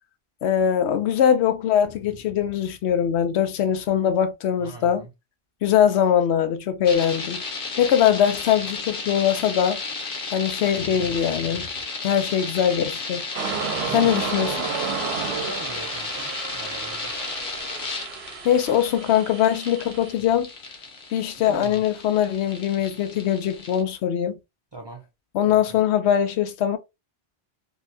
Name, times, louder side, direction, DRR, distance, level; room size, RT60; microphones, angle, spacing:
voice 1, 0.4-5.1 5.6-7.4 7.8-9.8 10.3-11.6 12.0-13.2 13.9-14.6 18.4-20.5 21.1-24.3 25.3-26.8, left 9 dB, 85° left, 0.8 m, -22 dB
voice 2, 4.6-5.1 13.9-14.2 14.9-17.1 21.4-21.8 24.7-25.0, right 3 dB, 35° right, 0.4 m, -41 dB
sound 1, 6.8-23.8, left 4 dB, 55° left, 1.0 m, -34 dB
sound 2, 13.3-20.1, right 6 dB, 75° right, 0.8 m, -32 dB
3.3 x 2.2 x 2.5 m
omnidirectional pair, 1.1 m